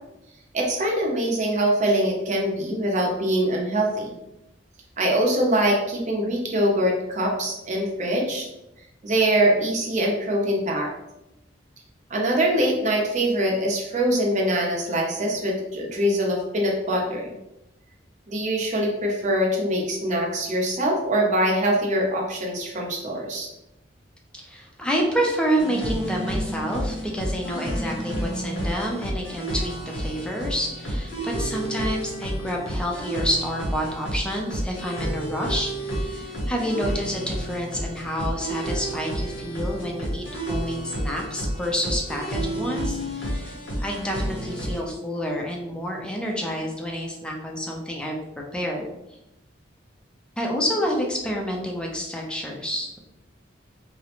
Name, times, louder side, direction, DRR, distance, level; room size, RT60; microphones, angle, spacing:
voice 1, 0.5-4.1 5.0-8.5 9.0-10.9 12.1-17.3 18.3-23.5, right 1 dB, 40° right, -1 dB, 0.6 m, -23 dB
voice 2, 24.4-48.2 48.5-48.8 50.4-53.0, equal, 5° left, -1 dB, 0.4 m, -28 dB
sound 1, 25.6-44.8, right 1 dB, 90° left, 0.8 m, -30 dB
2.5 x 2.0 x 2.8 m, 0.89 s
head